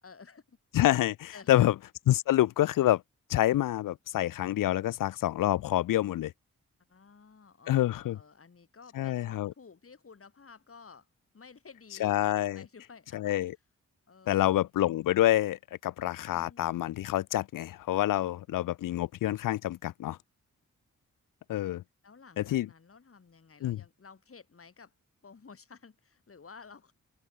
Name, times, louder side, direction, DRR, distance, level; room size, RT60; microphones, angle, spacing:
voice 1, 0.0-0.6 1.3-1.7 6.9-11.1 11.3-12.2 12.5-13.3 14.1-14.7 16.3-16.7 22.0-24.9 25.2-26.9, left 5 dB, 45° left, 2.3 m, -53 dB
voice 2, 0.7-1.7 2.1-3.0 3.3-6.3 7.7-8.2 9.0-9.5 12.0-12.6 13.1-13.6 14.3-20.2 21.5-21.8 22.4-22.7 23.6-23.8, left 14 dB, 90° left, 0.5 m, -27 dB
cardioid pair, 55°, 31 cm